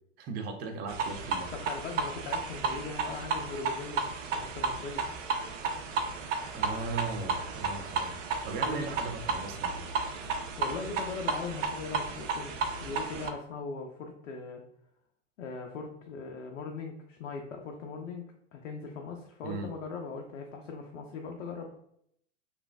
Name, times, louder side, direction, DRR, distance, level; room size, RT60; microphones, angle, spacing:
voice 1, 0.2-1.5 6.5-8.2 8.4-9.8 19.4-19.7, right 4 dB, 25° right, 5 dB, 0.4 m, -37 dB
sound 1, 0.9-13.3, right 4 dB, 75° right, 0.6 m, -33 dB
voice 2, 1.5-5.0 8.6-8.9 10.6-14.6 15.4-21.9, left 4 dB, 80° left, 3 dB, 0.6 m, -40 dB
2.9 x 2.5 x 2.3 m, 0.71 s
hypercardioid pair, 105°, 38 cm